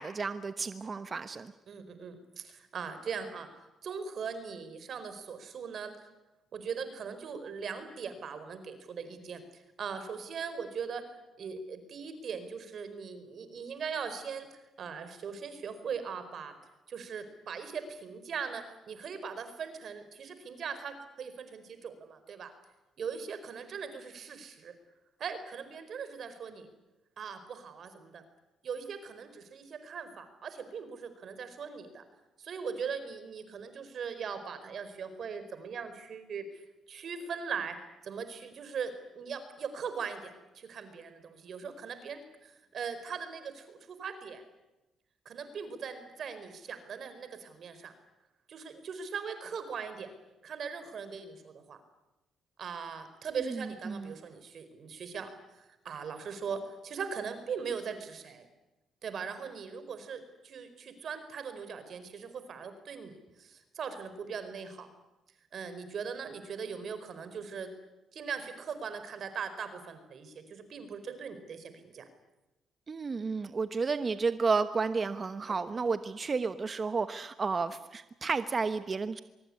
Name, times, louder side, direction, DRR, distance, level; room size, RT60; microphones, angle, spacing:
voice 1, 0.0-1.5 53.4-54.2 72.9-79.2, right 4 dB, 35° right, 11 dB, 1.1 m, -32 dB
voice 2, 1.7-6.0 6.5-14.5 14.8-16.6 16.9-22.5 23.0-24.7 25.2-26.7 27.2-28.2 28.6-32.0 32.4-36.5 36.9-44.4 45.2-47.9 48.5-50.1 50.4-51.8 52.6-58.5 59.0-64.9 65.5-67.7 68.1-72.0 75.5-75.6, right 6 dB, 60° right, 10 dB, 4.6 m, -40 dB
23.5 x 23.0 x 9.9 m, 1.0 s
cardioid pair, 90°, 0 cm